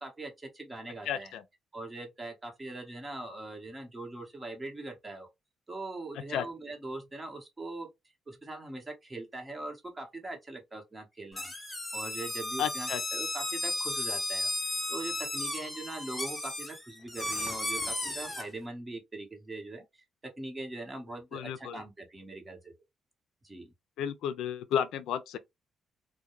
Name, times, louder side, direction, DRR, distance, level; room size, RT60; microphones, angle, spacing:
voice 1, 0.0-1.3 1.7-5.3 5.7-7.9 8.3-11.5 11.9-14.5 14.9-22.7 23.4-23.7, right 2 dB, 20° right, 1.0 m, -41 dB
voice 2, 1.1-1.4 6.3-6.5 12.6-13.0 21.3-21.8 24.0-25.4, left 9 dB, 85° left, 0.3 m, -32 dB
sound 1, 11.3-18.4, left 1 dB, 15° left, 0.8 m, -34 dB
2.3 x 2.1 x 2.9 m
cardioid pair, 90°, 0 cm